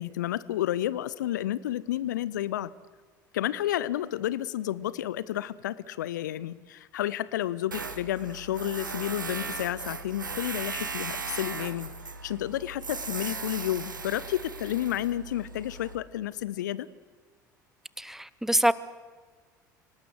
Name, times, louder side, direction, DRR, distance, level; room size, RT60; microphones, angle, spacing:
voice 1, 0.0-2.7 3.3-11.9 12.2-16.9, left 13 dB, 65° left, 19 dB, 0.6 m, -31 dB
Tools, 7.7-16.0, right 4 dB, 80° right, 1.2 m, -37 dB
voice 2, 18.0-18.7, right 1 dB, 5° right, 19 dB, 0.7 m, -25 dB
26.0 x 18.5 x 7.9 m, 1.5 s
figure-of-eight pair, 70°, 10 cm